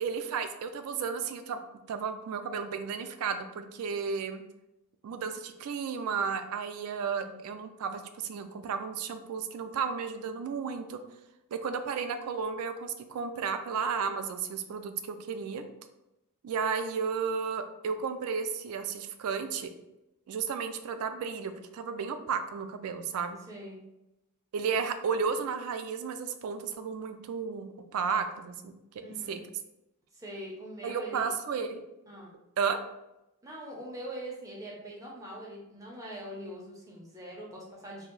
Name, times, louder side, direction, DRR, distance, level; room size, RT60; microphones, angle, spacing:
voice 1, 0.0-1.6 1.9-4.4 5.0-11.0 11.5-15.6 16.4-19.7 20.3-23.4 24.5-29.4 30.8-31.8 32.6-32.8, right 6 dB, 80° right, 8 dB, 0.3 m, -33 dB
voice 2, 7.0-7.4 23.5-23.8 29.0-29.4 30.1-31.3 32.1-32.3 33.4-38.1, equal, 15° right, -3 dB, 0.5 m, -43 dB
2.6 x 2.0 x 3.8 m, 0.91 s
head